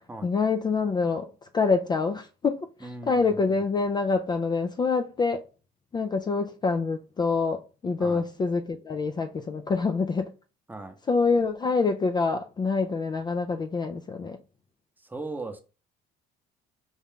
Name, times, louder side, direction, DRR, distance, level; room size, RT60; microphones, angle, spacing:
voice 1, 0.2-1.3 1.5-5.4 5.9-10.3 11.1-14.4, left 4 dB, 25° left, 0.4 m, -26 dB
voice 2, 2.8-3.4 8.0-8.2 10.7-11.0 15.0-15.6, right 2 dB, 10° right, 0.8 m, -38 dB
5.5 x 2.4 x 3.6 m
cardioid pair, 110°, 17 cm